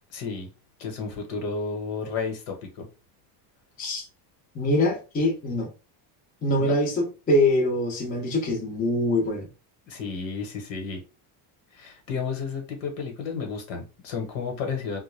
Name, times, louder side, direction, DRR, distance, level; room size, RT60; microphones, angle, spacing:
voice 1, 0.1-0.5 0.8-2.9 6.6-6.8 9.9-11.0 11.7-15.0, left 5 dB, 65° left, 1.1 m, -32 dB
voice 2, 4.5-5.7 6.4-9.5, left 1 dB, 20° left, 0.5 m, -24 dB
2.2 x 2.2 x 3.1 m
cardioid pair, 150°, 48 cm